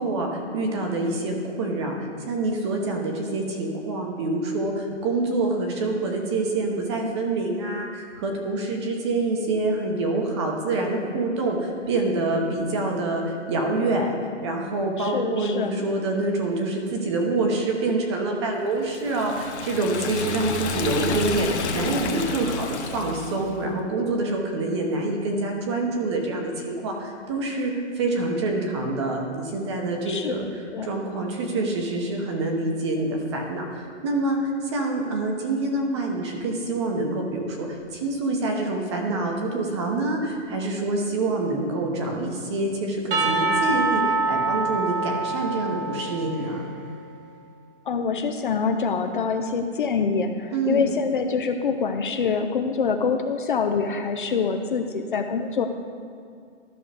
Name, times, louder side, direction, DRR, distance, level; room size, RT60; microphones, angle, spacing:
voice 1, 0.0-2.0 2.3-14.2 14.4-30.5 30.8-46.6 50.5-50.9, right 2 dB, 25° right, 2 dB, 0.9 m, -26 dB
voice 2, 15.0-15.7 30.1-30.3 30.7-30.9 47.9-55.7, left 5 dB, 45° left, 6 dB, 0.5 m, -25 dB
Liquid, 18.9-23.5, left 4 dB, 65° left, 1.1 m, -31 dB
Percussion / Church bell, 43.1-46.8, right 3 dB, 50° right, 1.5 m, -25 dB
12.5 x 6.2 x 3.4 m, 2.3 s
hypercardioid pair, 170°, 36 cm